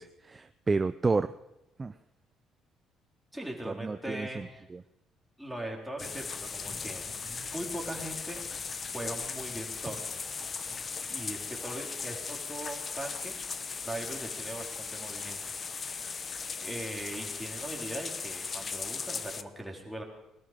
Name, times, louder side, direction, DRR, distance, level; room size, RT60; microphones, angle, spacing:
voice 1, 0.0-1.3 1.8-1.9 3.6-4.8, right 4 dB, 25° right, 11 dB, 0.5 m, -31 dB
voice 2, 3.3-4.6 5.4-8.4 8.9-10.1 11.1-13.3 13.8-15.4 15.7-15.9 16.6-20.0, right 1 dB, ahead, -1 dB, 3.7 m, -40 dB
sound 1, 6.0-19.4, left 5 dB, 35° left, 0.8 m, -38 dB
20.0 x 13.0 x 5.2 m, 0.89 s
cardioid pair, 105°, 0 cm